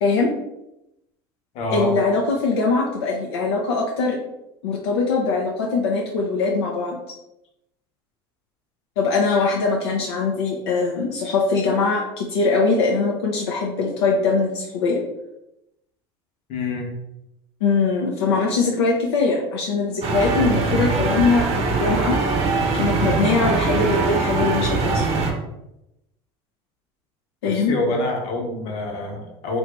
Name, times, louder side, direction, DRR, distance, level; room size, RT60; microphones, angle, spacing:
voice 1, 0.0-0.3 1.7-4.2 4.6-7.0 9.0-15.0 17.6-22.2 22.7-25.1 27.4-27.7, left 4 dB, 85° left, -1 dB, 0.5 m, -22 dB
voice 2, 1.5-1.9 16.5-16.9 27.4-29.6, left 2 dB, 55° left, 1 dB, 1.0 m, -26 dB
sound 1, 20.0-25.3, right 3 dB, 50° right, 0.8 m, -22 dB
2.9 x 2.6 x 3.4 m, 0.88 s
hypercardioid pair, 90°, 13 cm